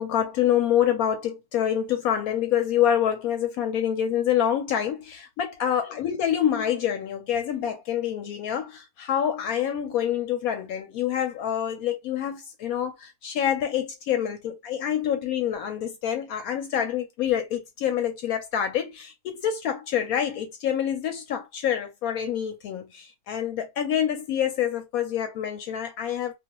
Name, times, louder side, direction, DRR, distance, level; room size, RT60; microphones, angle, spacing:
voice 1, 0.0-26.3, left 9 dB, 75° left, 1.0 m, -26 dB
2.3 x 2.3 x 2.9 m
omnidirectional pair, 1.7 m